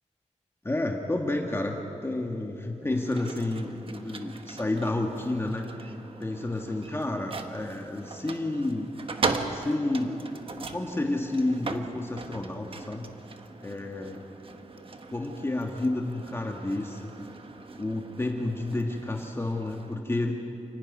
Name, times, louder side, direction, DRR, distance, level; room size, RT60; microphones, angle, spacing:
voice 1, 0.6-1.8 2.0-5.9 6.2-8.9 9.5-13.1 13.6-14.2 15.1-17.1 17.8-20.4, left 2 dB, 20° left, 2 dB, 1.5 m, -30 dB
sound 1, 2.8-20.0, right 3 dB, 50° right, 1.2 m, -39 dB
29.0 x 11.5 x 9.5 m, 2.9 s
wide cardioid pair, 135°, 12 cm